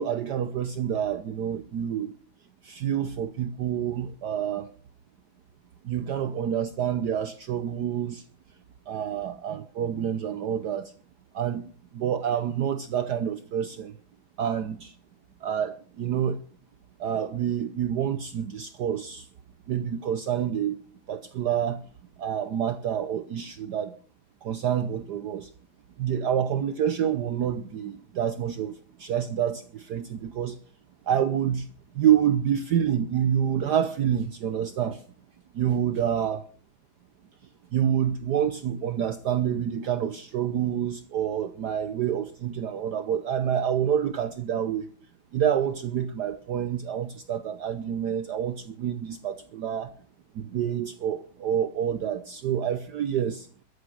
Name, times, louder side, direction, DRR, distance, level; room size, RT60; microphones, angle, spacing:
voice 1, 0.0-2.1 2.6-4.7 5.8-8.2 8.9-10.9 11.3-11.7 11.9-13.9 14.4-14.9 15.4-16.4 17.0-19.2 19.7-20.8 21.1-21.8 22.2-23.9 24.4-25.5 26.0-28.7 29.0-30.6 31.1-31.7 32.0-35.0 35.5-36.4 37.7-44.8 45.3-49.9 50.4-53.5, right 9 dB, 60° right, 1.3 m, -27 dB
14.0 x 10.0 x 6.3 m
omnidirectional pair, 2.2 m